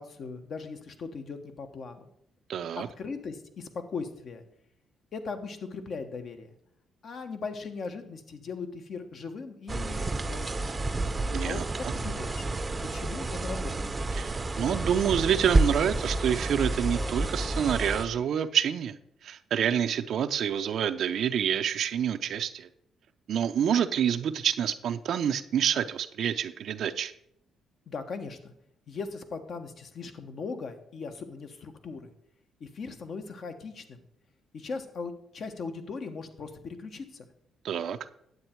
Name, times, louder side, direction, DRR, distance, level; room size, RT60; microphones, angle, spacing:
voice 1, 0.0-2.1 2.8-4.4 5.1-6.5 7.0-10.8 11.4-12.5 12.9-13.9 27.9-28.5 28.9-32.0 32.6-34.0 34.5-37.2, left 4 dB, 55° left, 7 dB, 1.1 m, -39 dB
voice 2, 2.5-2.9 11.3-11.9 14.2-19.0 19.2-22.7 23.3-27.1 37.6-38.0, right 8 dB, 65° right, 10 dB, 0.5 m, -27 dB
sound 1, 9.7-18.0, right 2 dB, 25° right, 0.6 m, -30 dB
9.6 x 7.8 x 4.4 m, 0.72 s
cardioid pair, 90°, 0 cm